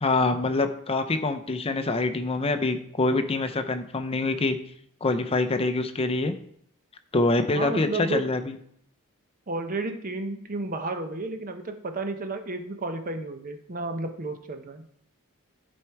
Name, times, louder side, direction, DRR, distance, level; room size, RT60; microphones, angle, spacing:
voice 1, 0.0-4.6 5.0-6.3 7.1-8.6, left 2 dB, 25° left, 8 dB, 0.6 m, -25 dB
voice 2, 7.5-8.2 9.5-14.9, right 2 dB, 40° right, 7 dB, 0.8 m, -32 dB
11.0 x 4.4 x 4.7 m, 0.68 s
head